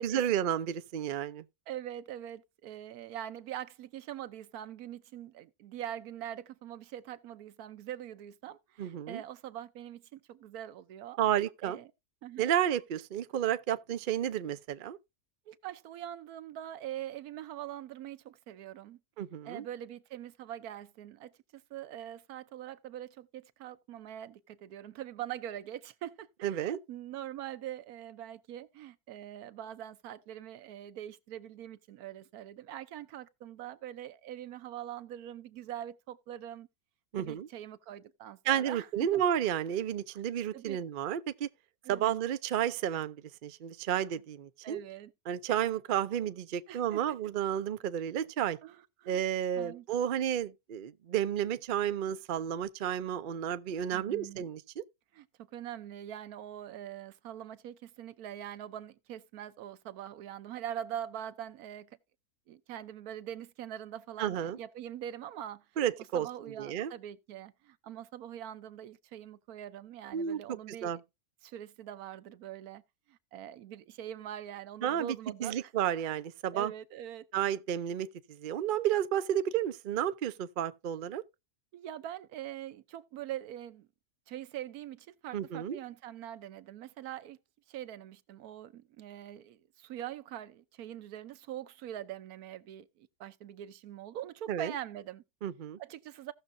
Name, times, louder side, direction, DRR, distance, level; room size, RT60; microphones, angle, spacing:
voice 1, 0.0-1.4 8.8-9.2 11.2-11.8 12.4-15.0 19.2-19.6 26.4-26.8 37.1-37.5 38.4-41.5 41.9-43.2 43.4-44.8 45.3-48.6 49.1-54.8 64.2-64.6 65.8-66.3 66.6-66.9 70.1-70.4 70.8-71.0 74.8-75.2 75.4-76.7 77.3-78.1 78.4-81.2 85.3-85.8 94.5-94.7 95.4-95.8, right 10 dB, 60° right, 0.5 m, -31 dB
voice 2, 1.7-11.2 11.6-11.9 12.2-12.5 15.5-19.0 19.4-36.7 37.2-39.2 40.1-40.2 40.5-40.8 41.8-42.2 44.6-45.1 46.7-47.2 48.6-49.2 49.5-49.9 53.9-54.4 55.1-62.0 62.5-65.7 66.1-71.0 71.4-72.8 73.1-75.7 76.5-77.3 81.7-83.9 84.3-87.4 87.7-95.2 95.8-96.3, right 11 dB, 85° right, 1.2 m, -43 dB
16.5 x 6.4 x 2.6 m
omnidirectional pair, 1.6 m